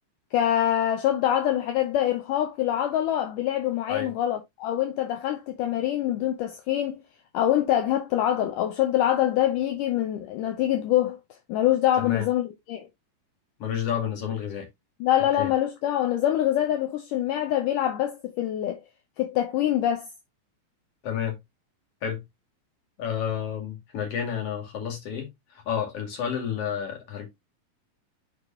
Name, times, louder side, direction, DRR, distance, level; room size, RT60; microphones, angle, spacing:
voice 1, 0.3-7.0 7.3-11.2 11.5-12.9 15.0-18.8 19.2-20.1, left 12 dB, 75° left, 2.3 m, -25 dB
voice 2, 12.0-12.3 13.6-14.7 15.4-15.5 21.0-21.4 22.0-22.2 23.0-25.3 25.7-27.3, left 8 dB, 45° left, 3.1 m, -30 dB
8.7 x 5.2 x 2.8 m
omnidirectional pair, 4.1 m